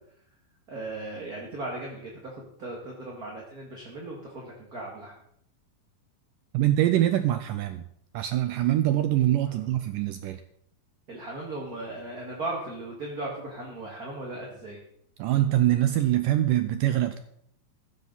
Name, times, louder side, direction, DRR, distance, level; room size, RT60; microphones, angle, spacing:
voice 1, 0.7-2.3 2.6-5.1 9.5-9.6 11.1-14.8, right 2 dB, 30° right, -1 dB, 1.8 m, -37 dB
voice 2, 6.5-7.8 8.1-10.4 15.2-17.2, right 13 dB, 85° right, 10 dB, 1.9 m, -24 dB
15.5 x 12.0 x 4.1 m, 0.69 s
omnidirectional pair, 4.5 m